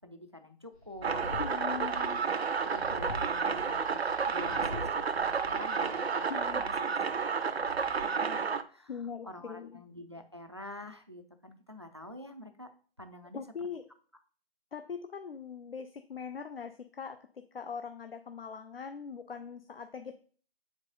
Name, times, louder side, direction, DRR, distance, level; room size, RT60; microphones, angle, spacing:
voice 1, 0.0-1.2 1.6-2.0 2.6-8.9 9.2-12.7 13.0-13.4, left 1 dB, 25° right, 8 dB, 0.4 m, -48 dB
sound 1, 0.8-6.3, left 1 dB, 90° left, 1.9 m, -45 dB
sound 2, 1.0-8.6, right 5 dB, 75° right, 0.7 m, -31 dB
voice 2, 1.4-2.2 6.3-6.6 8.9-9.8 13.3-13.8 14.7-20.2, left 6 dB, 65° left, 8 dB, 0.7 m, -41 dB
7.6 x 4.8 x 3.7 m, 0.43 s
figure-of-eight pair, 160°, 32 cm